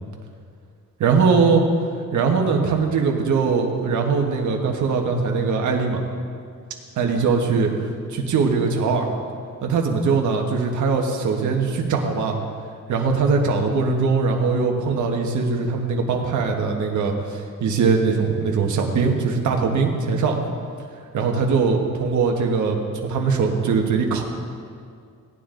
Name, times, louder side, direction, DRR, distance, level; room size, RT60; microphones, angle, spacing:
voice 1, 1.0-1.6 2.1-6.0 7.0-7.7 8.1-9.0 9.6-12.3 12.9-20.4 21.1-22.8 23.0-24.2, right 5 dB, 65° right, 1 dB, 1.5 m, -21 dB
16.5 x 9.7 x 3.9 m, 2.2 s
cardioid pair, 150°, 32 cm